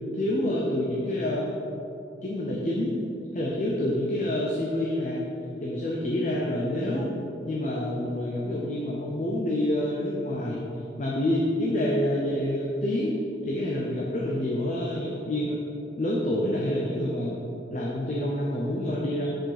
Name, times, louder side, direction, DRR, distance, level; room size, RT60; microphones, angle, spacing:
voice 1, 0.1-1.6 2.2-3.0 3.3-5.3 5.6-7.1 7.4-10.6 11.0-13.2 13.4-15.6 16.0-17.4 17.7-19.3, left 1 dB, 40° left, -4 dB, 0.6 m, -27 dB
6.3 x 5.1 x 4.1 m, 2.8 s
head